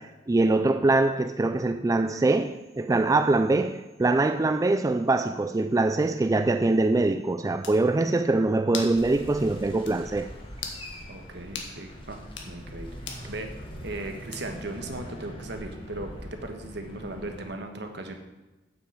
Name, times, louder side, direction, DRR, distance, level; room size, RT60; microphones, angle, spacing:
voice 1, 0.0-10.3, right 2 dB, 20° right, 0.3 m, -23 dB
sound 1, 7.2-7.3 7.6-7.8 8.7-9.0 9.4-9.5 9.8-10.0 10.5-10.8 11.5-11.7 12.2-12.5 13.1-13.3 14.3-14.7, left 5 dB, 90° left, 1.6 m, -37 dB
sound 2, 8.9-17.4, equal, 30° left, 1.8 m, -42 dB
voice 2, 11.1-12.2 12.4-12.9 13.3-13.5 13.8-18.2, right 2 dB, 65° right, 1.3 m, -37 dB
8.4 x 6.2 x 7.3 m
head